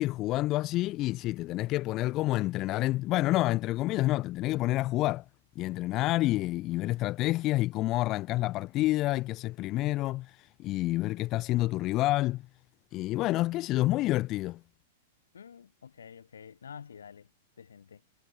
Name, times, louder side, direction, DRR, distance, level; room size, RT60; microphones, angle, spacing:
voice 1, 0.0-5.2 5.6-10.3 10.6-12.4 12.9-14.6, left 17 dB, 40° left, 0.7 m, -28 dB
voice 2, 15.3-17.3 17.6-18.0, left 7 dB, 85° left, 2.5 m, -48 dB
hypercardioid pair, 115°, 0 cm